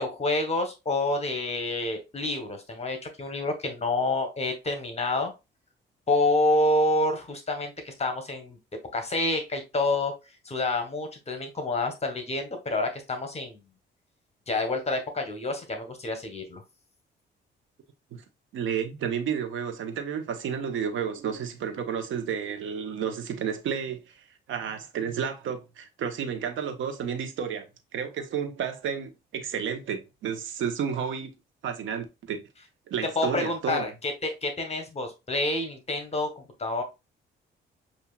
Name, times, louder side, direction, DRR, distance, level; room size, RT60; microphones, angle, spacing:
voice 1, 0.0-5.3 6.1-8.6 8.9-10.1 10.4-13.6 14.5-16.6 33.1-36.8, left 2 dB, 30° left, 1.2 m, -28 dB
voice 2, 18.5-24.1 24.5-31.3 31.6-32.4 32.9-33.9, right 7 dB, 75° right, 1.1 m, -31 dB
7.1 x 2.7 x 2.4 m
cardioid pair, 90°, 20 cm